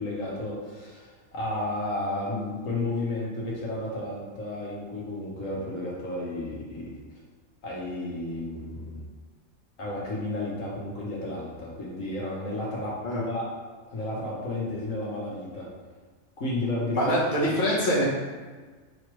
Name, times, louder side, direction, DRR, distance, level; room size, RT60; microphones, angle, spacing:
voice 1, 0.0-6.8 7.6-9.0 9.8-13.5 13.9-15.7 16.4-17.0, left 2 dB, 70° left, -4 dB, 1.4 m, -32 dB
voice 2, 16.9-18.1, equal, 40° left, -5 dB, 1.1 m, -24 dB
5.0 x 3.2 x 3.1 m, 1.4 s
omnidirectional pair, 1.4 m